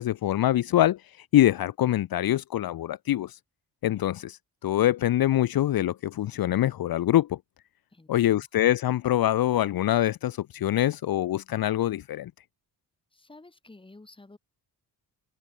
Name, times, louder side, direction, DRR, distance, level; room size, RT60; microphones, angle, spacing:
voice 1, 0.0-3.4 3.8-7.4 8.1-12.3, left 13 dB, 60° left, 0.9 m, -24 dB
voice 2, 7.9-8.5 13.1-14.4, left 2 dB, 15° left, 5.1 m, -51 dB
wide cardioid pair, 165°, 39 cm